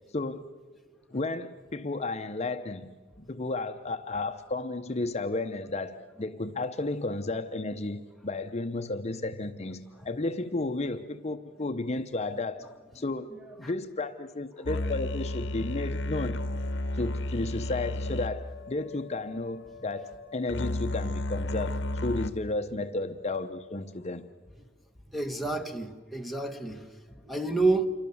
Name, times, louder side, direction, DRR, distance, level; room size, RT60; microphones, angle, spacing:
voice 1, 0.1-0.5 1.1-12.7 12.9-13.3 13.6-16.4 16.9-24.2, left 2 dB, 35° left, 0.8 m, -33 dB
sound 1, 14.7-22.3, left 1 dB, 70° left, 1.0 m, -33 dB
voice 2, 25.1-26.9 27.2-27.9, right 3 dB, ahead, 1.3 m, -29 dB
27.5 x 23.5 x 7.1 m
head